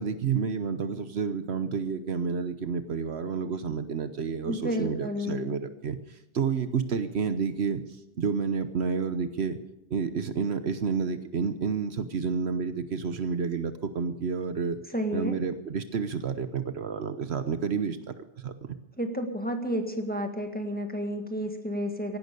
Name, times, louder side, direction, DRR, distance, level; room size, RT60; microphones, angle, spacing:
voice 1, 0.0-7.8 8.2-9.6 9.9-14.8 15.1-18.2 18.4-18.5, right 5 dB, 65° right, 11 dB, 1.2 m, -30 dB
voice 2, 4.4-5.7 14.9-15.4 19.0-22.2, equal, 10° left, 4 dB, 1.6 m, -31 dB
16.0 x 12.0 x 6.8 m, 0.88 s
omnidirectional pair, 1.2 m